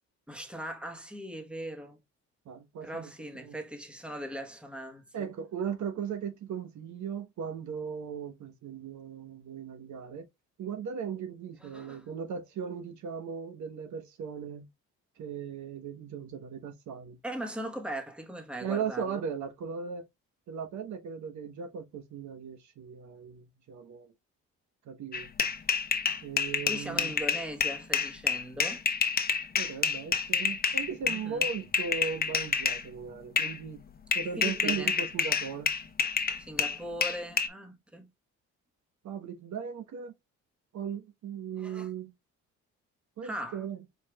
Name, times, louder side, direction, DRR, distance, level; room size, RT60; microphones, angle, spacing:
voice 1, 0.3-2.0 2.8-5.3 11.6-12.1 17.2-19.2 26.6-28.8 31.0-31.5 34.4-34.9 36.4-38.1 41.6-41.9 43.2-43.6, equal, 5° right, 1.2 m, -39 dB
voice 2, 2.4-3.1 3.4-3.6 5.1-10.3 10.6-14.7 15.2-17.2 18.6-20.0 20.5-24.1 24.9-25.3 26.2-27.1 29.6-33.8 34.1-35.7 39.0-40.1 40.7-42.1 43.2-43.8, right 7 dB, 70° right, 1.1 m, -37 dB
sound 1, 25.1-32.8 33.4-33.6 34.1-37.5, left 6 dB, 30° left, 0.8 m, -28 dB
4.7 x 4.6 x 2.3 m
cardioid pair, 90°, 30 cm